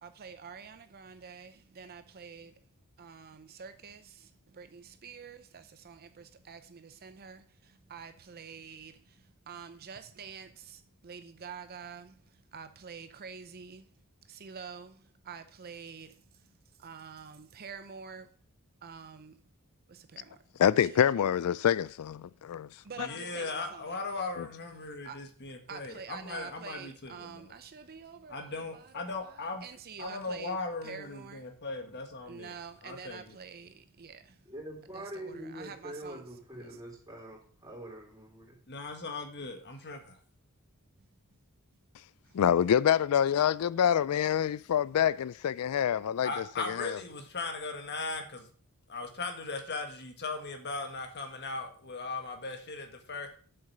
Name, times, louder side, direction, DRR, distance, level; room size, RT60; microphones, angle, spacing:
voice 1, 0.0-2.5 3.0-9.2 9.5-12.2 12.5-13.8 14.3-16.2 16.8-18.3 18.8-19.4 19.9-20.3 20.8-21.0 22.8-23.8 25.0-25.2 25.7-30.6 30.8-31.4 32.3-34.3 34.9-36.2 45.7-45.9, right 6 dB, 45° right, 0.6 m, -47 dB
voice 2, 20.6-22.7 23.0-23.1 24.4-24.5 42.3-46.3 46.7-47.0, left 9 dB, 75° left, 0.3 m, -26 dB
voice 3, 23.0-27.5 28.3-29.7 30.0-32.5 32.8-33.4 38.7-40.2 46.2-48.5 48.9-53.3, left 3 dB, 50° left, 1.6 m, -38 dB
voice 4, 34.5-38.4, right 1 dB, 15° right, 3.7 m, -44 dB
7.8 x 7.7 x 5.5 m
head